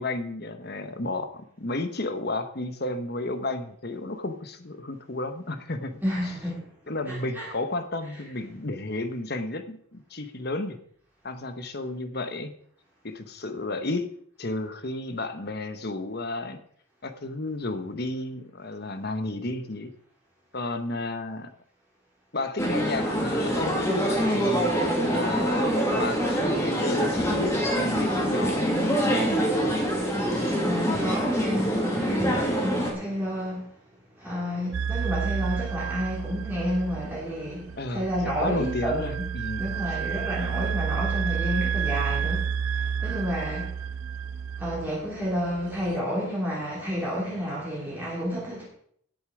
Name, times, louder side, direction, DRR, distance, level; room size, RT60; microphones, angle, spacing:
voice 1, 0.0-6.0 6.9-10.8 11.2-12.5 13.0-14.1 14.4-16.6 17.0-19.9 20.5-21.5 22.3-29.4 37.8-38.0 38.4-40.0, left 2 dB, 50° left, 1.2 m, -32 dB
voice 2, 6.0-6.6 7.1-7.5 30.6-33.7 34.2-39.3 39.6-43.8 44.6-48.7, equal, 10° right, 2.9 m, -30 dB
sound 1, 22.6-32.9, equal, 15° left, 2.7 m, -25 dB
sound 2, 34.7-46.0, right 7 dB, 80° right, 0.4 m, -31 dB
17.0 x 7.0 x 5.0 m
head